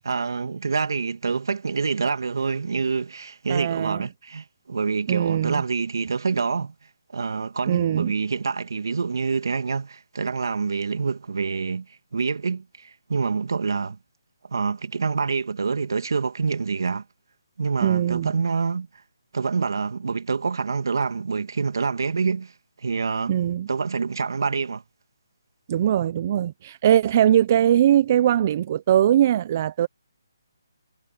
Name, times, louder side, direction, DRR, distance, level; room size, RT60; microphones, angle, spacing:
voice 1, 0.0-6.7 7.1-11.9 12.1-14.0 14.5-17.0 17.6-18.9 19.3-22.5 22.8-23.4 23.7-24.8, right 5 dB, 70° right, 2.2 m, -26 dB
voice 2, 3.5-4.1 5.1-5.6 7.7-8.1 17.8-18.3 23.3-23.7 25.7-29.9, right 11 dB, 35° right, 0.7 m, -21 dB
hypercardioid pair, 155°, 2 cm